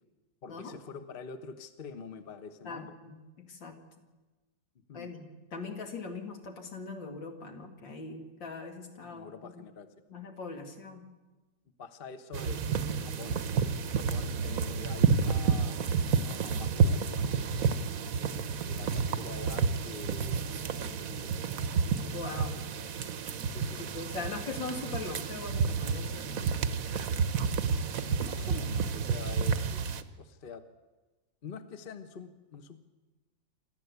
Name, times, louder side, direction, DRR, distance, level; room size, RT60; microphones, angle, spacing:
voice 1, 0.4-2.9 4.9-5.1 9.0-9.9 11.8-13.4 13.8-18.0 18.7-21.3 23.5-23.9 27.8-30.6 31.4-32.8, left 5 dB, 35° left, 9 dB, 1.1 m, -46 dB
voice 2, 2.6-3.8 4.9-5.3 5.5-9.5 10.1-11.0 22.1-22.6 23.9-26.5, left 4 dB, 80° left, 4 dB, 3.0 m, -41 dB
sound 1, 12.3-30.0, right 6 dB, 55° right, 1.2 m, -30 dB
27.5 x 13.0 x 8.2 m, 1.2 s
omnidirectional pair, 2.0 m